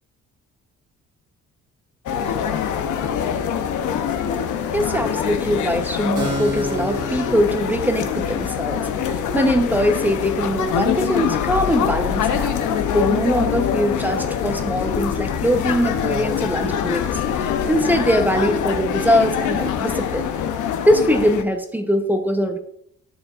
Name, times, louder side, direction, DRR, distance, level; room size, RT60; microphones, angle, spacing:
sound 1, 2.1-21.4, left 8 dB, 80° left, 0.8 m, -24 dB
voice 1, 4.7-20.3 20.9-22.6, equal, 5° right, 6 dB, 0.9 m, -22 dB
Keyboard (musical), 6.2-13.5, equal, 85° right, 3.4 m, -35 dB
12.0 x 6.9 x 2.5 m, 0.69 s
cardioid pair, 90°, 30 cm